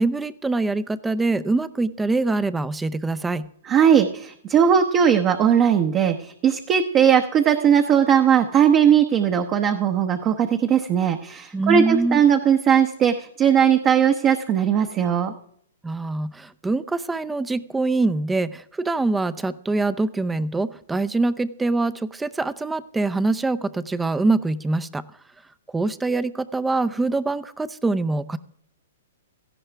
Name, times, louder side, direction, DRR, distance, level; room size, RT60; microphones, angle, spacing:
voice 1, 0.0-3.5 11.5-12.2 15.8-25.0 25.7-28.4, right 3 dB, 10° right, 14 dB, 0.6 m, -24 dB
voice 2, 3.7-15.3, right 8 dB, 30° right, 5 dB, 0.9 m, -18 dB
17.0 x 14.5 x 3.5 m, 0.67 s
hypercardioid pair, 130°, 0 cm